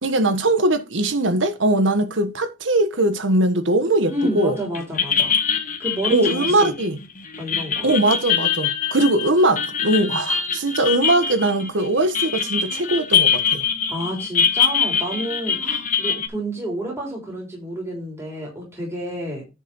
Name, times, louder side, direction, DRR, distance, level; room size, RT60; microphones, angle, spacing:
voice 1, 0.0-4.6 6.1-7.0 7.8-13.6, right 1 dB, 75° right, 1.3 m, -20 dB
voice 2, 4.1-5.4 5.8-6.7 7.4-7.9 13.9-19.4, right 1 dB, 15° right, 3.6 m, -29 dB
sound 1, 4.2-4.5 4.7-16.3, left 7 dB, 45° left, 1.5 m, -23 dB
10.0 x 4.4 x 5.4 m
head